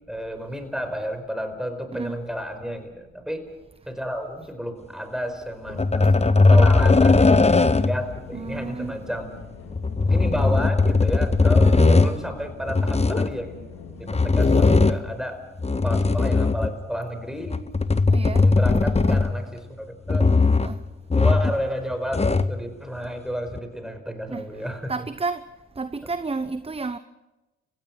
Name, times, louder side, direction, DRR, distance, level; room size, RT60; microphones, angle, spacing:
voice 1, 0.1-3.4 3.9-6.2 6.5-9.3 10.0-13.5 13.9-15.4 15.8-17.6 18.4-20.3 21.1-24.9, equal, ahead, 4.9 m, -31 dB
sound 1, 5.7-14.5, left 5 dB, 85° left, 3.6 m, -41 dB
sound 2, 5.8-8.1 9.7-12.1 12.7-13.3 14.1-15.1 15.6-16.8 17.5-19.5 20.1-20.8 21.1-21.7 21.9-22.6 23.5-23.6, left 3 dB, 20° left, 1.1 m, -18 dB
voice 2, 8.3-8.9 11.6-11.9 14.2-14.8 18.1-18.5 20.6-20.8 24.3-24.4 24.9-25.4 25.8-27.0, right 4 dB, 15° right, 0.9 m, -31 dB
29.5 x 16.0 x 6.1 m
hypercardioid pair, 45°, 34 cm